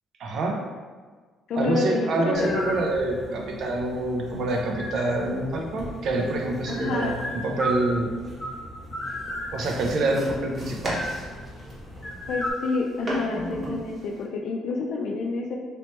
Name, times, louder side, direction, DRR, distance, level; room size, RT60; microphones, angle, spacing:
voice 1, 0.2-0.6 1.6-8.1 9.5-11.0, right 2 dB, 60° right, 1 dB, 0.6 m, -26 dB
voice 2, 1.5-2.8 6.7-7.1 12.3-15.5, left 3 dB, 70° left, 0 dB, 0.4 m, -28 dB
sound 1, 2.3-12.5, equal, 15° left, 1.0 m, -36 dB
sound 2, 9.0-14.2, equal, 35° right, 1.0 m, -35 dB
3.0 x 3.0 x 3.1 m, 1.4 s
cardioid pair, 105°, 0 cm